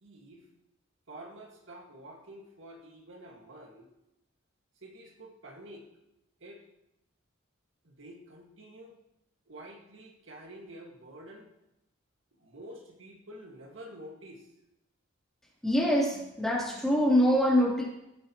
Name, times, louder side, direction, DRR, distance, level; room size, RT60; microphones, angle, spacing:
voice 1, 0.0-0.5 1.1-3.9 4.8-5.9 6.4-6.6 7.8-9.0 9.5-11.5 12.4-14.5, right 1 dB, 75° right, 0 dB, 1.9 m, -48 dB
voice 2, 15.6-17.8, equal, ahead, -6 dB, 3.2 m, -24 dB
17.0 x 8.6 x 3.1 m, 0.87 s
head